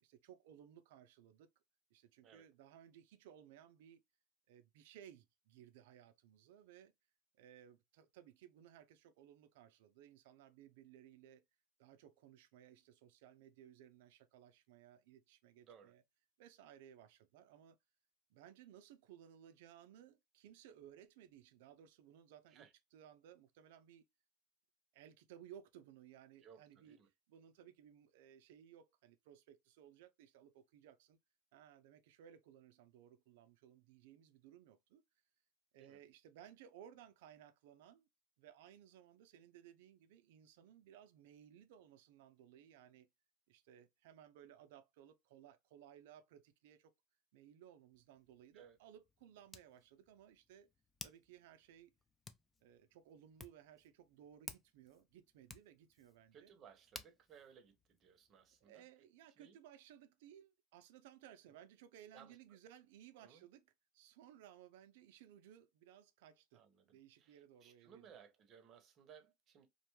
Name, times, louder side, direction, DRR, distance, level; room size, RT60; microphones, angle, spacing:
voice 1, 0.0-1.5 1.9-4.0 4.5-6.9 7.3-11.4 11.8-16.0 16.4-17.8 18.3-24.1 24.9-27.0 27.3-31.2 31.5-35.0 35.7-38.1 38.4-43.1 43.5-46.9 47.3-50.7 51.0-51.9 52.6-56.5 58.6-66.6 66.9-68.1, right 10 dB, 80° right, 0.4 m, -60 dB
voice 2, 15.6-15.9 22.5-22.7 26.4-27.1 35.8-36.0 48.5-48.8 56.3-58.8 59.4-59.6 61.5-61.6 62.1-62.4 63.2-63.4 66.5-69.7, right 7 dB, 40° right, 0.7 m, -62 dB
Hands, 47.9-58.7, left 4 dB, 20° left, 0.3 m, -58 dB
2.5 x 2.2 x 2.9 m
supercardioid pair, 120°, 0 cm